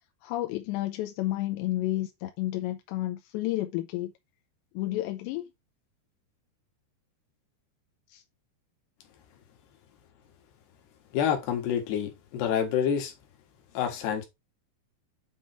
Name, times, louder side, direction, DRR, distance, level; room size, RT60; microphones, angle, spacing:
voice 1, 0.2-4.1 4.8-5.5 8.1-8.2, left 16 dB, 80° left, 2.7 m, -31 dB
voice 2, 11.1-13.1 13.7-14.2, left 8 dB, 65° left, 3.3 m, -27 dB
9.0 x 3.6 x 4.4 m
omnidirectional pair, 5.5 m